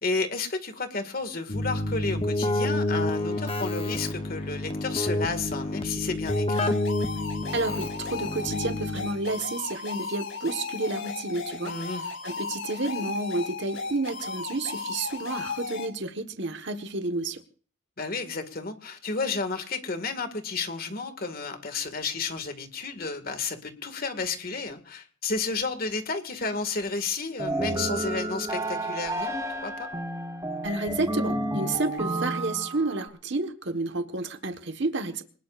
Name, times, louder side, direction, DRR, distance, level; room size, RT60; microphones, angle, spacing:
voice 1, 0.0-6.7 11.6-12.0 18.0-29.3 29.6-29.9, left 4 dB, 45° left, 8 dB, 2.0 m, -32 dB
Keyboard (musical), 1.5-9.4, left 1 dB, 25° left, 1.0 m, -29 dB
sound 1, 6.2-15.9, left 4 dB, 65° left, 5.1 m, -35 dB
voice 2, 7.5-11.7 12.0-17.4 30.6-35.2, right 2 dB, 60° right, 7 dB, 1.4 m, -30 dB
sound 2, 27.4-33.1, right 1 dB, 15° right, 4.4 m, -31 dB
26.0 x 19.5 x 2.5 m, 0.41 s
head